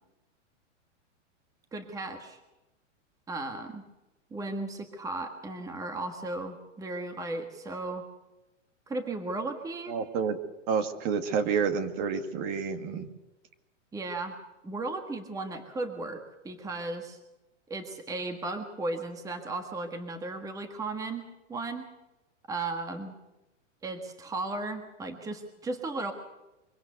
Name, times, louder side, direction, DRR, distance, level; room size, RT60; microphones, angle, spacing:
voice 1, 1.7-2.4 3.3-3.8 4.3-8.0 8.9-10.0 13.9-14.4 14.6-17.2 17.7-21.9 22.5-23.1 23.8-26.1, right 2 dB, 10° right, 6 dB, 1.6 m, -35 dB
voice 2, 9.9-10.4 10.7-13.1, right 6 dB, 40° right, 9 dB, 2.1 m, -29 dB
24.0 x 17.0 x 6.8 m, 1.0 s
hypercardioid pair, 150°, 37 cm